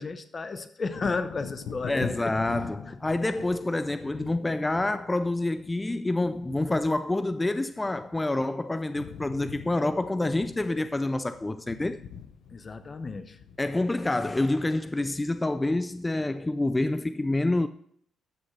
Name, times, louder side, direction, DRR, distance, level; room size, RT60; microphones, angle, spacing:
voice 1, 0.0-2.4 2.9-3.0 12.5-13.4, left 4 dB, 35° left, 0.9 m, -33 dB
Wind / Thunder, 0.9-8.5 8.8-16.0 16.4-16.6, left 7 dB, 75° left, 0.8 m, -44 dB
voice 2, 1.9-12.0 13.6-17.7, left 2 dB, 15° left, 0.4 m, -27 dB
13.5 x 6.3 x 3.3 m
cardioid pair, 90°, 0 cm